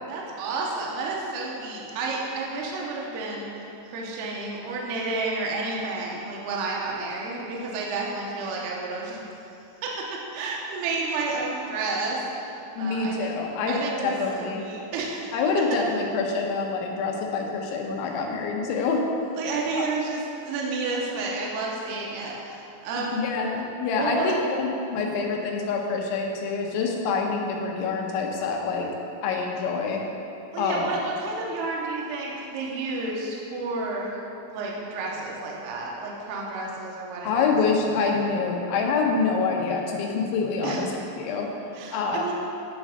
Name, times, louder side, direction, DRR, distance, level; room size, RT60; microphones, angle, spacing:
voice 1, 0.1-9.2 9.8-10.0 10.3-13.4 13.7-15.3 19.4-23.1 24.0-24.3 30.5-34.2 34.5-37.5 40.6-40.8 41.7-42.3, right 3 dB, 75° right, -3 dB, 2.6 m, -31 dB
voice 2, 12.8-14.6 15.3-19.0 19.7-19.9 23.0-28.9 29.2-30.0 30.6-30.9 37.2-40.9 41.2-41.5 41.9-42.3, left 4 dB, 80° left, 0 dB, 3.0 m, -26 dB
11.0 x 3.9 x 5.2 m, 2.8 s
omnidirectional pair, 5.6 m